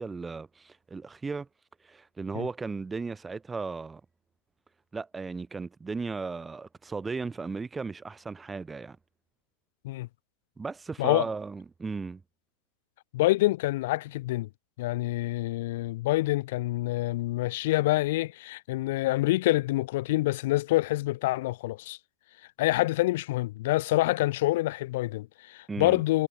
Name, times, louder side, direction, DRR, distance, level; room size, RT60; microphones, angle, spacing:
voice 1, 0.0-1.5 1.8-4.0 4.9-9.0 10.6-12.2 25.7-26.0, right 4 dB, 15° right, 6.1 m, -36 dB
voice 2, 13.1-14.5 14.8-22.0 22.6-26.3, left 18 dB, 65° left, 3.2 m, -26 dB
hypercardioid pair, 100°, 0 cm